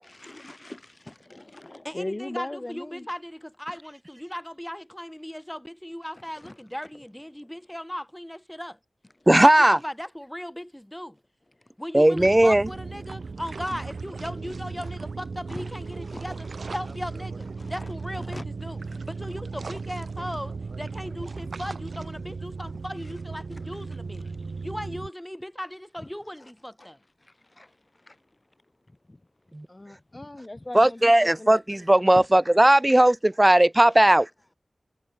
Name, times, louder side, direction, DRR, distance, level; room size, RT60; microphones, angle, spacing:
voice 1, 0.0-3.1 6.3-6.6 7.4-7.5 11.6-11.7 15.5-16.7 17.6-17.9 18.2-18.4 18.8-19.0 23.0-23.1 23.5-24.7 26.4-26.5 26.8-26.9 27.2-28.4 28.9-29.2 29.7-31.6 32.1-32.3 32.6-32.8 33.9-34.2, left 1 dB, 30° left, 3.5 m, -41 dB
voice 2, 1.8-8.8 9.4-11.2 11.8-24.2 24.6-27.0, equal, 5° left, 2.1 m, -37 dB
voice 3, 9.3-9.8 11.9-12.6 29.5-29.7 30.7-34.3, right 1 dB, 20° right, 0.6 m, -17 dB
sound 1, 12.1-25.1, right 4 dB, 85° right, 2.1 m, -36 dB
wide cardioid pair, 65°, 0 cm